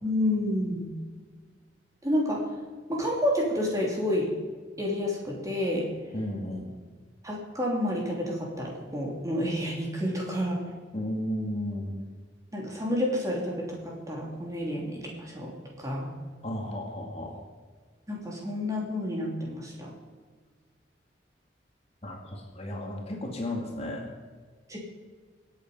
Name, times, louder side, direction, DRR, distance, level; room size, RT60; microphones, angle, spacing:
voice 1, 0.0-0.9 2.0-2.4 2.9-4.3 4.8-5.9 7.2-10.7 12.5-16.1 18.1-19.9 24.7-24.8, left 1 dB, 20° right, -2 dB, 3.0 m, -29 dB
voice 2, 6.1-6.7 10.9-12.0 16.4-17.4 22.0-24.1, left 1 dB, 35° left, 0 dB, 2.3 m, -34 dB
24.0 x 8.6 x 5.5 m, 1.5 s
head